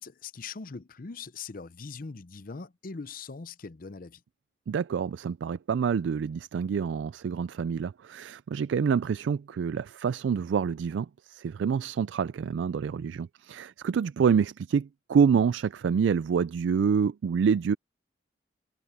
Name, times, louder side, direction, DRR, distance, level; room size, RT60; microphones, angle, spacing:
voice 1, 0.0-4.2, left 4 dB, 50° left, 0.7 m, -41 dB
voice 2, 4.7-17.7, right 6 dB, 90° right, 0.3 m, -27 dB
head